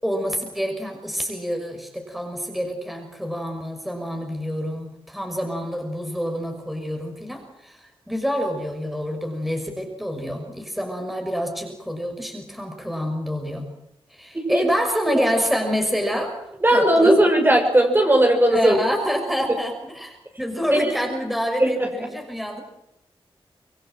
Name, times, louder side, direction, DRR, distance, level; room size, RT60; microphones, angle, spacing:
voice 1, 0.0-13.7 14.1-16.4 16.7-17.2 18.5-22.6, equal, ahead, 3 dB, 6.1 m, -27 dB
voice 2, 16.6-18.8 20.7-20.9 21.6-22.1, right 1 dB, 20° right, 2 dB, 6.4 m, -18 dB
26.0 x 22.5 x 7.7 m, 0.81 s
wide cardioid pair, 90°, 10 cm